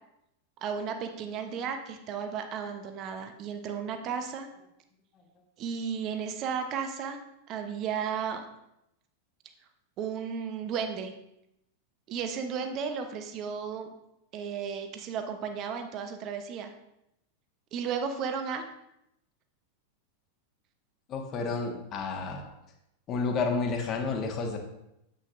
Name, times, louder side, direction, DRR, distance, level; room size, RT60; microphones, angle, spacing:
voice 1, 0.6-4.5 5.6-7.2 7.5-8.5 10.0-11.1 12.1-13.9 14.3-16.7 17.7-18.7, right 6 dB, 35° right, 6 dB, 0.9 m, -34 dB
voice 2, 21.1-22.5 23.1-24.6, left 4 dB, 30° left, 3 dB, 1.4 m, -30 dB
9.1 x 8.4 x 2.6 m, 0.83 s
figure-of-eight pair, 90°, 0 cm